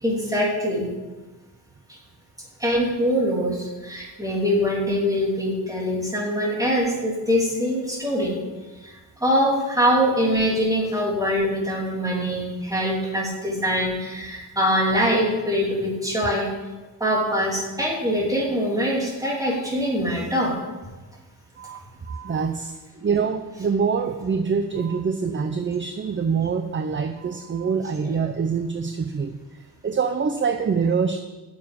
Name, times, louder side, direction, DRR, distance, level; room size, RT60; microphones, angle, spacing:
voice 1, 0.0-0.9 1.9-2.0 2.6-8.4 8.8-16.5 17.0-20.6, equal, 10° right, -3 dB, 3.2 m, -23 dB
voice 2, 22.1-31.2, right 6 dB, 30° right, 7 dB, 0.6 m, -25 dB
9.5 x 7.1 x 8.7 m, 1.2 s
wide cardioid pair, 150°, 39 cm